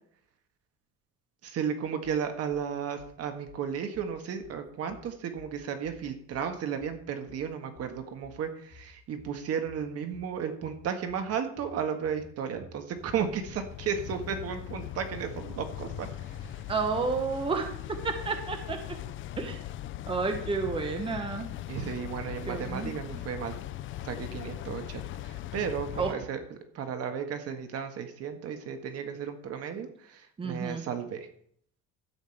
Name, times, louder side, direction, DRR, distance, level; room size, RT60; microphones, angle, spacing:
voice 1, 1.4-16.6 21.7-23.5 24.0-26.4 26.7-31.3, right 7 dB, 50° right, 7 dB, 1.6 m, -34 dB
sound 1, 2.0-2.7 3.0-3.6 3.9-4.6 4.9-5.6 5.8-6.5 6.8-7.5 7.8-8.4 8.7-9.4 9.7-10.3 10.6-11.3 11.6-12.2 12.5-13.2 13.5-14.1 14.4-14.5 14.9-15.5 15.8-16.0 16.3-16.8, left 3 dB, 65° left, 2.6 m, -53 dB
sound 2, 13.0-26.1, left 14 dB, 40° left, 0.4 m, -40 dB
voice 2, 16.7-19.0 19.4-19.6 20.1-21.5 22.5-23.2 26.0-26.1 30.4-30.8, right 4 dB, 15° right, 5 dB, 1.1 m, -31 dB
12.5 x 5.3 x 7.8 m, 0.66 s
cardioid pair, 160°, 31 cm